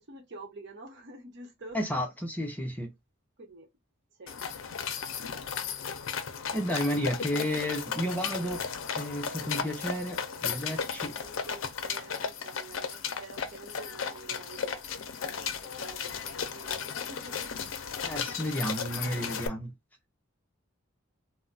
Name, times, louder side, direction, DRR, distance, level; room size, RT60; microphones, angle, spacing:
voice 1, 0.0-2.1 3.4-3.7 4.2-4.4 7.3-7.7 10.7-17.5, right 2 dB, 60° right, 0.9 m, -48 dB
voice 2, 1.7-2.9 6.5-8.7 9.0-11.1 18.0-19.7, equal, 10° left, 0.7 m, -32 dB
sound 1, 4.3-19.5, left 6 dB, 75° left, 0.5 m, -35 dB
2.3 x 2.1 x 3.8 m
head